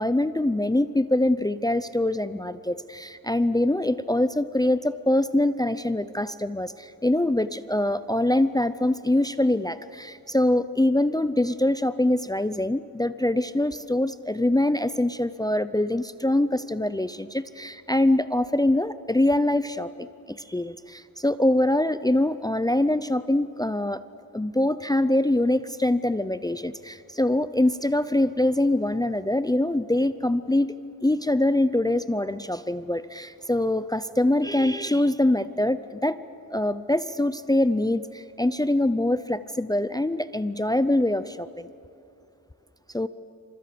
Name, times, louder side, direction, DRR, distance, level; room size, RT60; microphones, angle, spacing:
voice 1, 0.0-20.1 20.5-24.0 24.3-30.7 31.0-36.2 36.5-41.7 42.9-43.1, left 1 dB, 10° left, 13 dB, 0.6 m, -24 dB
29.0 x 27.0 x 6.8 m, 2.7 s
wide cardioid pair, 140°, 37 cm